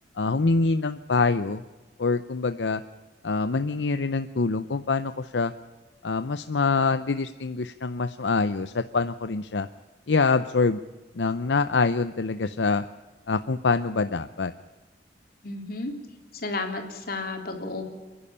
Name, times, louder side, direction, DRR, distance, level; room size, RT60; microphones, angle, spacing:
voice 1, 0.2-1.6 2.0-2.8 3.2-5.5 6.0-9.7 10.1-10.8 11.2-12.8 13.3-14.5, left 4 dB, 80° left, 11 dB, 0.7 m, -25 dB
voice 2, 15.4-15.9 16.3-17.8, left 2 dB, 60° left, 3 dB, 3.5 m, -32 dB
29.0 x 11.5 x 8.7 m, 1.2 s
head